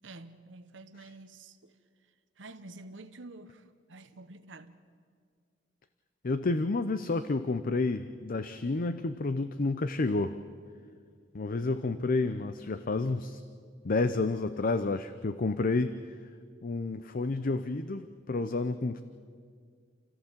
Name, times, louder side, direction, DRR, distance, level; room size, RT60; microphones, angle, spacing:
voice 1, 0.0-1.8 2.4-4.8, right 2 dB, 70° right, 9 dB, 1.1 m, -49 dB
voice 2, 6.2-10.4 11.3-13.4 13.8-15.9 16.6-19.0, left 3 dB, 45° left, 11 dB, 0.6 m, -30 dB
29.0 x 14.5 x 7.4 m, 2.1 s
head